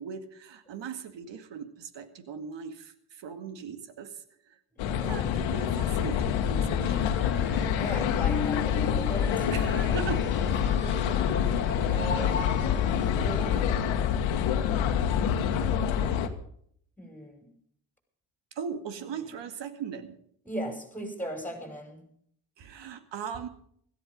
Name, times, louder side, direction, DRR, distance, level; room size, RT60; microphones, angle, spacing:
voice 1, 0.0-4.6 5.1-7.2 9.5-10.2 18.6-20.2 22.6-23.5, right 6 dB, 70° right, 10 dB, 2.1 m, -39 dB
voice 2, 4.7-5.3 7.8-9.5 11.8-13.9 15.1-16.0 17.0-17.5 20.5-22.0, equal, 5° left, 4 dB, 6.0 m, -38 dB
sound 1, 4.8-16.3, left 8 dB, 80° left, 1.6 m, -26 dB
sound 2, 6.8-13.9, left 4 dB, 25° left, 2.3 m, -38 dB
16.5 x 14.0 x 5.3 m, 0.64 s
supercardioid pair, 55°, 45 cm